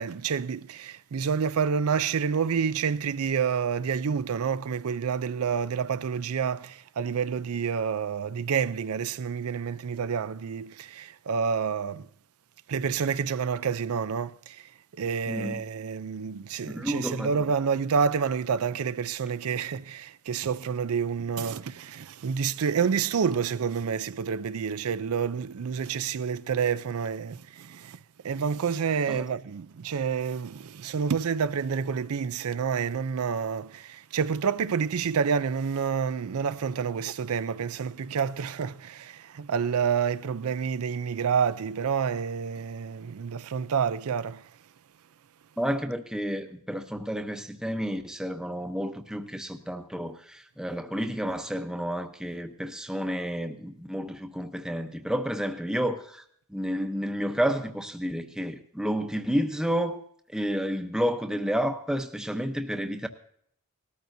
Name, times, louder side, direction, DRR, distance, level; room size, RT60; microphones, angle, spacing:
voice 1, 0.0-12.1 12.7-28.0 28.2-44.5, right 6 dB, 75° right, 0.4 m, -28 dB
voice 2, 15.3-15.6 16.6-17.5 29.1-29.2 45.6-56.2 56.5-60.0 60.3-63.1, equal, 5° right, 0.8 m, -30 dB
19.5 x 13.5 x 2.7 m
head